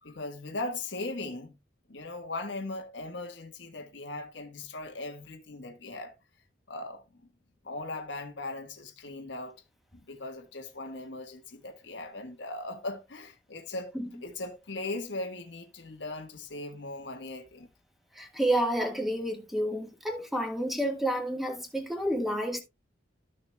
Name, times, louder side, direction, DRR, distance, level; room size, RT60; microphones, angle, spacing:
voice 1, 0.0-1.6 1.9-6.1 6.7-7.0 7.6-9.6 9.9-17.7, left 2 dB, 75° left, 1.4 m, -39 dB
voice 2, 18.1-22.6, right 1 dB, ahead, 1.4 m, -30 dB
13.0 x 6.7 x 2.2 m
head